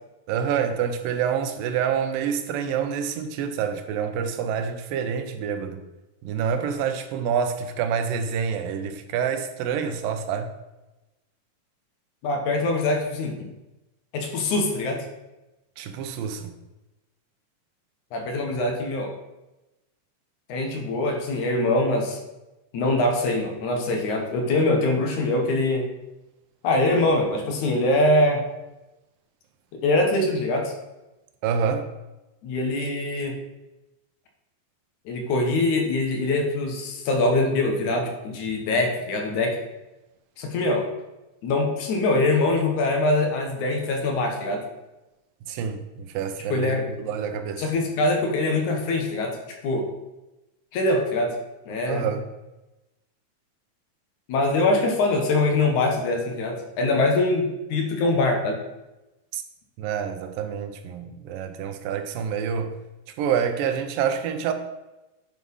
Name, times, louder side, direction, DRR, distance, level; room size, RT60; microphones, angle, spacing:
voice 1, 0.3-5.8 6.2-10.5 15.8-16.5 31.4-31.9 45.5-47.6 51.9-52.3 59.3-59.4 59.8-62.7 63.2-64.5, right 7 dB, 85° right, 2.5 m, -27 dB
voice 2, 12.2-13.5 14.1-15.0 18.1-19.1 20.5-22.2 22.7-25.9 26.6-28.4 29.7-30.7 32.4-33.3 35.1-39.6 40.4-40.9 41.4-44.6 46.5-46.9 47.6-49.9 50.7-51.3 51.7-52.0 54.3-58.6, left 2 dB, 65° left, 2.5 m, -23 dB
10.5 x 4.6 x 5.4 m
omnidirectional pair, 3.9 m